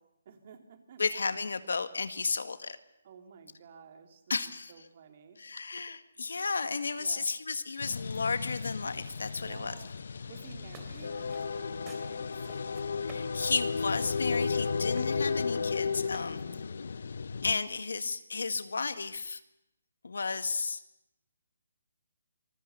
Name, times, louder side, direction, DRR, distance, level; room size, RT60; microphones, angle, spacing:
voice 1, 0.2-1.2 3.0-5.4 7.0-7.3 9.4-9.9 10.3-12.5 16.3-16.6, right 7 dB, 35° right, 6 dB, 3.1 m, -52 dB
voice 2, 1.0-2.8 4.3-4.7 5.4-9.7 13.0-16.4 17.4-19.4 20.0-20.8, left 4 dB, 80° left, 11 dB, 1.9 m, -33 dB
sound 1, 7.8-17.5, left 5 dB, 60° left, 0.9 m, -34 dB
sound 2, 10.7-16.7, right 4 dB, 15° right, 3.5 m, -54 dB
27.0 x 22.0 x 7.0 m, 0.85 s
hypercardioid pair, 170°, 0 cm